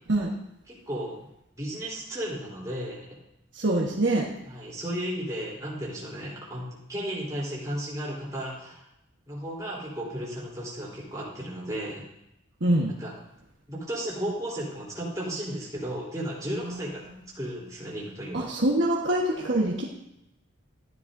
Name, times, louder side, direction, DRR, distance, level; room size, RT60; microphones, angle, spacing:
voice 1, 0.7-1.2 1.6-3.2 4.5-8.8 9.3-12.0 13.0-13.1 13.7-17.0 17.3-18.5, right 1 dB, 15° right, -6 dB, 3.6 m, -34 dB
voice 2, 3.5-4.3 12.6-12.9 18.3-19.8, right 1 dB, 60° right, -2 dB, 1.4 m, -24 dB
13.5 x 10.0 x 2.7 m, 0.84 s
head